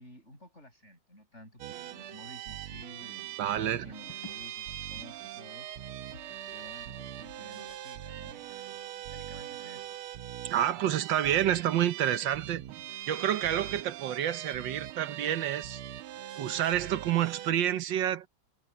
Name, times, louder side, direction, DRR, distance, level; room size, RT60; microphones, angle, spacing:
voice 1, 0.0-5.7 6.5-10.0, left 1 dB, 30° left, 8.0 m, -52 dB
sound 1, 1.6-17.5, right 12 dB, 85° right, 1.7 m, -42 dB
voice 2, 3.4-3.8 10.5-12.6 13.1-15.8 16.4-18.3, right 11 dB, 65° right, 1.5 m, -29 dB
sound 2, 3.6-8.8, left 3 dB, 70° left, 5.2 m, -55 dB
omnidirectional pair, 2.3 m